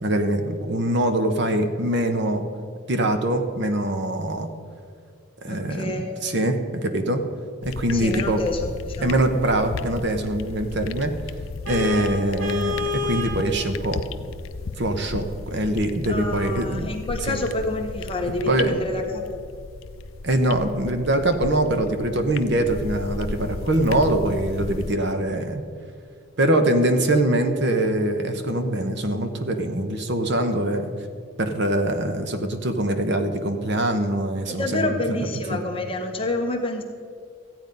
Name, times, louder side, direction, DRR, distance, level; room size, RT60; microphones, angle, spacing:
voice 1, 0.0-2.4 2.9-4.5 5.4-7.2 7.6-8.4 9.0-11.1 11.7-14.0 14.8-16.9 17.3-17.4 18.5-18.8 20.2-25.6 26.4-30.9 31.4-35.2 35.5-35.6, right 1 dB, 55° right, 7 dB, 0.9 m, -23 dB
voice 2, 5.5-6.2 7.9-9.2 16.1-19.4 34.6-36.8, left 2 dB, 25° left, 3 dB, 1.1 m, -28 dB
sound 1, 7.6-24.9, left 4 dB, 70° left, 0.5 m, -35 dB
Vehicle horn car horn honking, 11.7-13.4, left 4 dB, 80° right, 3.4 m, -27 dB
14.0 x 9.1 x 5.3 m, 2.3 s
head